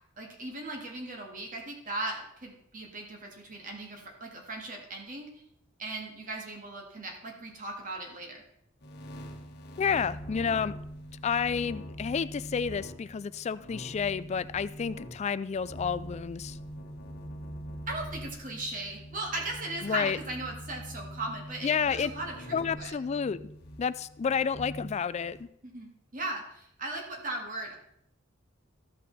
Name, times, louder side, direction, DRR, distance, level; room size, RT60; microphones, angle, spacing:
voice 1, 0.2-5.3 5.8-8.4 17.9-22.4 22.8-22.9 25.6-27.8, right 2 dB, 40° right, 1 dB, 2.1 m, -38 dB
sound 1, 8.8-25.4, equal, 55° left, 1.2 m, -43 dB
voice 2, 9.8-10.7 11.2-16.6 19.8-20.2 21.6-22.1 22.5-23.4 23.8-25.5, left 6 dB, 35° left, 16 dB, 0.3 m, -30 dB
13.5 x 5.4 x 4.1 m, 0.74 s
head